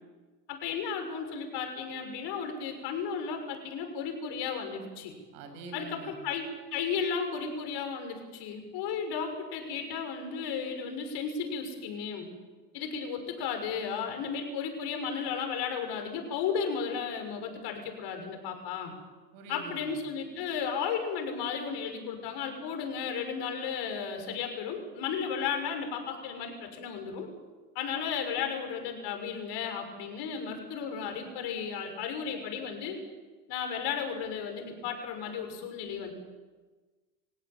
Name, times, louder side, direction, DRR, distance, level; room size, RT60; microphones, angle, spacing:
voice 1, 0.5-5.1 5.7-6.4 6.7-12.3 12.7-18.9 19.5-27.3 27.7-33.0 33.5-36.1, left 6 dB, 55° left, 5 dB, 6.6 m, -34 dB
voice 2, 5.3-6.1 19.3-20.0, right 3 dB, 70° right, 7 dB, 7.2 m, -44 dB
26.5 x 17.0 x 9.1 m, 1.3 s
hypercardioid pair, 105°, 49 cm